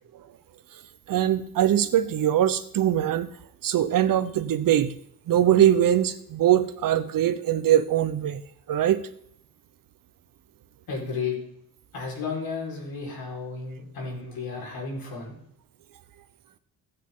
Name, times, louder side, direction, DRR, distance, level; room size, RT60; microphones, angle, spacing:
voice 1, 1.1-3.3 3.6-4.9 5.3-8.4 8.7-9.0, right 11 dB, 60° right, 11 dB, 0.9 m, -22 dB
voice 2, 10.9-11.4 11.9-15.3, left 4 dB, 70° left, -2 dB, 4.7 m, -33 dB
15.0 x 9.0 x 3.8 m, 0.70 s
wide cardioid pair, 160°, 38 cm